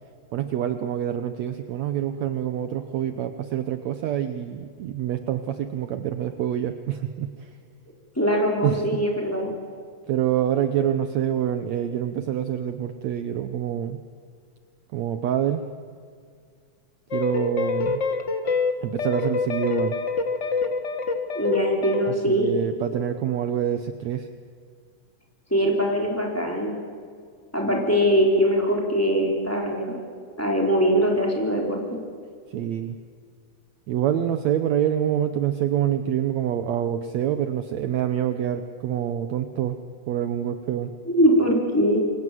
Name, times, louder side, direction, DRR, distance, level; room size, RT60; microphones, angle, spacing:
voice 1, 0.3-7.5 8.6-9.0 10.1-14.0 14.9-15.7 17.1-18.0 18.8-20.0 22.1-24.3 32.5-33.0 33.9-39.8 40.1-40.9, right 10 dB, 70° right, 9 dB, 2.0 m, -26 dB
voice 2, 8.2-9.5 21.3-22.5 25.5-26.7 27.5-30.0 30.4-32.0 41.1-42.0, equal, 5° left, -1 dB, 4.2 m, -22 dB
sound 1, 17.1-22.1, left 4 dB, 55° left, 0.8 m, -26 dB
28.0 x 24.0 x 7.8 m, 2.1 s
omnidirectional pair, 3.7 m